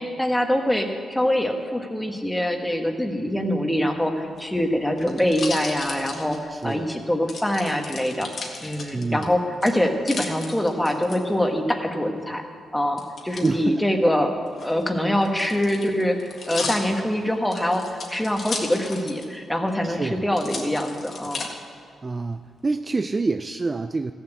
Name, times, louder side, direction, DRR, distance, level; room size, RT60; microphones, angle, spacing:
voice 1, 0.0-8.3 8.6-12.4 12.7-14.3 14.6-21.4, left 1 dB, 5° left, 4 dB, 1.2 m, -24 dB
sound 1, 4.2-6.8 7.3-9.2 9.6-11.2 13.0-13.5 14.5-19.4 19.7-19.8 20.3-21.5 22.1-22.6, left 3 dB, 45° left, 1.8 m, -35 dB
voice 2, 6.5-6.9 8.9-9.3 13.4-13.7 19.8-20.2 22.0-24.1, right 3 dB, 25° right, 9 dB, 0.3 m, -27 dB
14.5 x 7.2 x 8.0 m, 2.3 s
cardioid pair, 130°, 0 cm